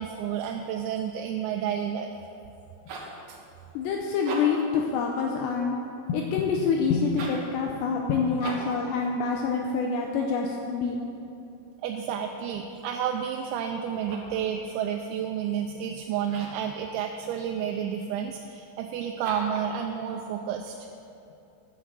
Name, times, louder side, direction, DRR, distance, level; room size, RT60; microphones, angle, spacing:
voice 1, 0.0-2.1 3.3-3.4 11.8-20.7, right 8 dB, 85° right, 3 dB, 2.9 m, -30 dB
sound 1, 2.6-3.2 4.1-4.7 7.1-7.5 8.4-8.8 13.8-14.4 16.2-16.7 19.2-19.7, right 2 dB, 60° right, 2.1 m, -39 dB
voice 2, 3.7-5.8 6.1-11.0, left 5 dB, 80° left, 1 dB, 2.7 m, -26 dB
11.0 x 8.1 x 7.5 m, 2.7 s
omnidirectional pair, 5.3 m